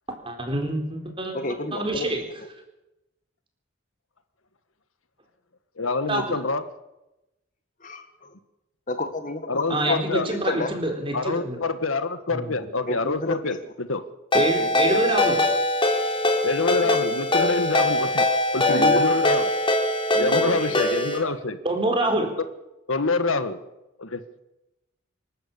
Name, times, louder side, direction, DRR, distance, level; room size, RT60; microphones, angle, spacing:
voice 1, 0.2-1.3 1.7-2.3 6.1-6.4 9.7-11.6 12.3-12.5 14.3-15.4 21.6-22.3, right 2 dB, 25° right, 3 dB, 4.3 m, -26 dB
voice 2, 1.3-2.1 7.8-8.3 8.9-10.7 12.8-13.5 14.6-15.0 18.7-19.2 20.1-20.7, left 2 dB, 40° left, 8 dB, 1.7 m, -30 dB
voice 3, 5.8-6.6 9.5-10.3 10.7-10.8 11.1-14.0 16.4-18.2 18.5-19.5 20.2-21.6 22.9-23.6 24.0-24.2, left 3 dB, 90° left, 11 dB, 1.6 m, -26 dB
Ringtone, 14.3-21.2, left 1 dB, 25° left, 3.5 m, -22 dB
26.5 x 12.0 x 8.6 m, 0.94 s
head